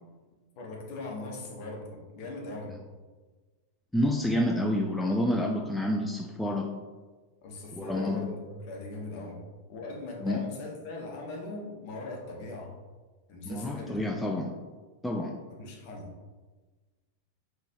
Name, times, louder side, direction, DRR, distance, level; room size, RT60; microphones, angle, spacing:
voice 1, 0.6-2.7 7.4-9.4 9.7-12.7 13.3-14.0 15.5-16.1, left 2 dB, 45° left, 0 dB, 1.0 m, -40 dB
voice 2, 3.9-6.7 7.8-8.2 10.2-10.4 13.4-14.5 15.0-15.3, left 1 dB, 5° left, 1 dB, 0.3 m, -28 dB
5.1 x 3.2 x 2.8 m, 1.3 s
figure-of-eight pair, 90°, 0 cm